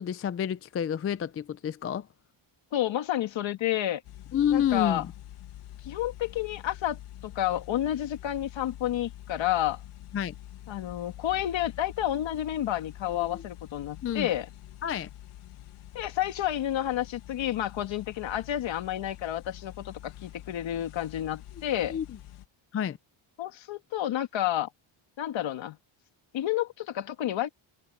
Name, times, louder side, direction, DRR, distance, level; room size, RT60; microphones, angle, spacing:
voice 1, 0.0-2.1 4.3-5.1 10.1-10.3 13.1-13.4 14.0-14.3 14.8-15.1 21.9-22.0 22.7-23.0, left 9 dB, 30° left, 0.4 m, -29 dB
voice 2, 2.7-4.0 4.5-5.0 5.8-9.8 10.7-14.5 15.9-22.0 23.4-24.7 25.2-25.8 26.3-27.5, left 12 dB, 65° left, 2.1 m, -30 dB
sound 1, 4.0-22.5, left 12 dB, 90° left, 1.8 m, -46 dB
cardioid pair, 170°, 50 cm